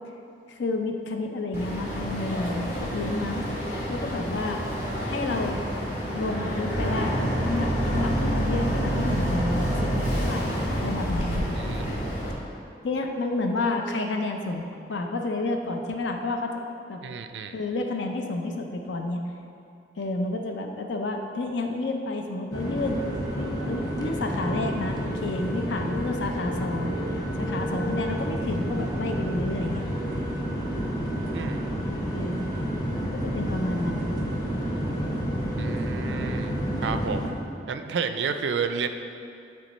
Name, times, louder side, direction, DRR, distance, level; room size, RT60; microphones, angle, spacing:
voice 1, 0.5-3.4 3.9-4.6 5.0-5.6 6.1-7.1 7.4-11.5 12.8-16.5 16.9-17.0 17.5-19.2 20.0-23.1 23.4-27.0 27.4-29.9 32.1-32.5 33.0-34.1, left 2 dB, 80° left, 4 dB, 0.5 m, -30 dB
Boat Water vehicle, 1.5-12.3, equal, 45° left, 1.5 m, -28 dB
voice 2, 11.6-12.0 17.0-17.5 31.3-31.6 35.6-37.3 37.7-38.9, right 6 dB, 75° right, 8 dB, 0.4 m, -31 dB
sound 1, 22.5-37.3, equal, 20° left, 0.9 m, -29 dB
8.4 x 3.4 x 4.1 m, 2.5 s
head